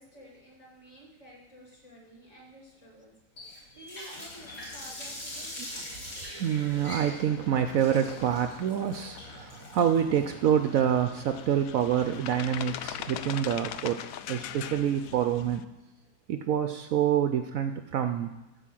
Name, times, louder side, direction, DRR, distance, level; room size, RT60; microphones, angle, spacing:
voice 1, 0.0-3.1 3.4-5.5, right 1 dB, 40° left, -2 dB, 2.9 m, -52 dB
Water tap faucet, 3.4-12.3, left 1 dB, 60° left, 4.4 m, -43 dB
sound 1, 4.2-15.6, left 10 dB, 80° left, 0.7 m, -43 dB
voice 2, 5.6-14.0 14.3-15.6 16.3-18.3, right 9 dB, 75° right, 8 dB, 0.7 m, -27 dB
14.0 x 4.9 x 7.6 m, 1.0 s
omnidirectional pair, 2.0 m